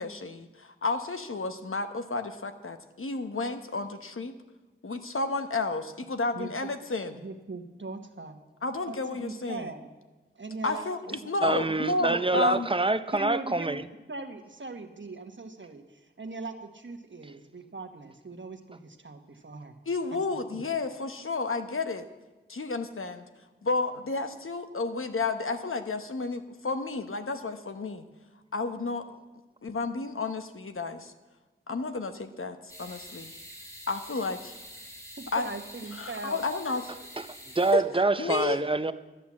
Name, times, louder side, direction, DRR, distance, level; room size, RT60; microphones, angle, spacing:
voice 1, 0.0-4.3 4.8-7.2 8.6-9.7 10.6-12.7 19.9-22.0 22.5-23.2 23.6-28.0 28.5-29.2 29.6-31.1 31.7-33.3 33.9-34.5 35.3-35.5 35.9-36.9 37.7-37.8 38.2-38.6, left 3 dB, 80° left, 1.0 m, -31 dB
voice 2, 7.1-8.4 8.9-9.9 10.3-12.6 13.1-13.8 14.1-19.7 20.1-20.2 20.5-20.6 35.2-36.4 36.7-37.1, right 3 dB, 65° right, 1.3 m, -40 dB
voice 3, 11.4-13.9 17.2-17.3 37.2-37.3 37.5-38.9, right 2 dB, 25° right, 0.6 m, -26 dB
sound 1, 32.7-37.7, equal, 15° left, 2.9 m, -46 dB
13.0 x 9.2 x 7.3 m
wide cardioid pair, 60°, 21 cm